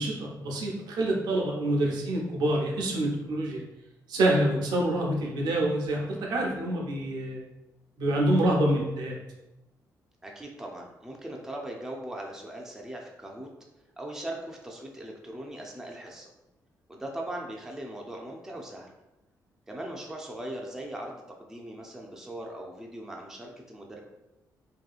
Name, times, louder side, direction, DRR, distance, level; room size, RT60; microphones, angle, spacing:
voice 1, 0.0-3.6 4.1-7.4 8.0-9.2, right 1 dB, 90° right, -2 dB, 0.6 m, -26 dB
voice 2, 10.2-13.5 14.0-16.3 16.9-18.9 19.7-24.0, right 1 dB, 5° right, -1 dB, 0.4 m, -39 dB
2.8 x 2.2 x 2.3 m, 0.98 s
cardioid pair, 105°, 7 cm